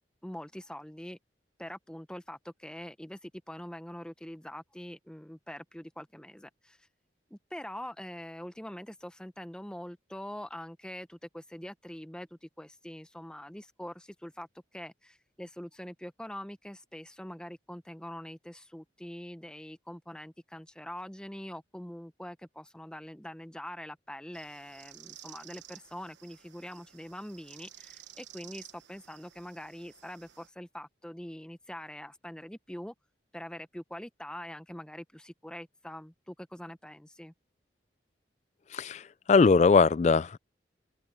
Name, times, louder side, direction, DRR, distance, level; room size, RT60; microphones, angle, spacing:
voice 1, 0.2-1.2 1.6-6.9 7.3-32.9 33.3-37.3, equal, 5° left, 0.7 m, -44 dB
sound 1, 24.3-30.5, right 12 dB, 75° right, 1.1 m, -53 dB
voice 2, 38.7-40.4, left 4 dB, 35° left, 0.3 m, -21 dB
head